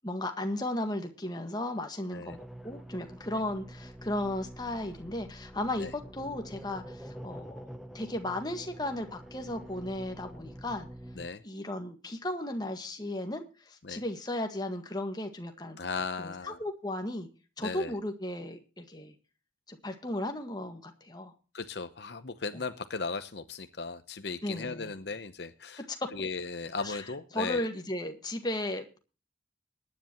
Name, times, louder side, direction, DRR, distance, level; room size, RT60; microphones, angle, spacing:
voice 1, 0.0-10.9 11.4-15.8 16.2-17.3 17.6-19.1 19.7-21.3 22.5-22.6 24.4-25.0 25.9-26.1 26.8-27.0 27.3-29.0, left 1 dB, 20° left, 5 dB, 1.7 m, -35 dB
sound 1, 2.3-11.3, equal, ahead, 0.9 m, -46 dB
voice 2, 15.8-16.6 17.6-18.0 21.5-25.8 26.1-27.7, left 4 dB, 60° left, 10 dB, 0.9 m, -37 dB
22.0 x 10.0 x 3.0 m, 0.35 s
head